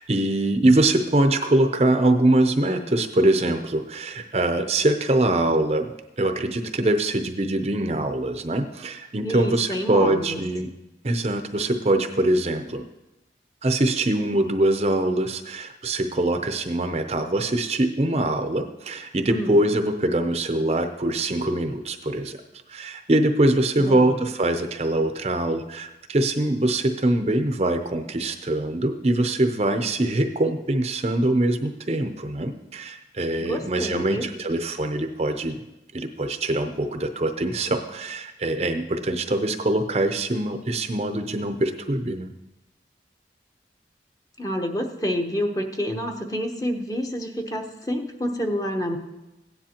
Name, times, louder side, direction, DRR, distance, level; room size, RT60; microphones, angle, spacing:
voice 1, 0.0-5.9 6.2-10.7 11.0-12.8 13.6-22.4 22.7-35.6 35.9-42.3, right 1 dB, 35° right, 7 dB, 0.6 m, -23 dB
voice 2, 9.2-10.4 19.3-19.6 23.7-24.2 33.4-34.3 44.4-49.0, equal, 20° left, 3 dB, 0.9 m, -28 dB
16.0 x 10.0 x 2.9 m, 0.98 s
head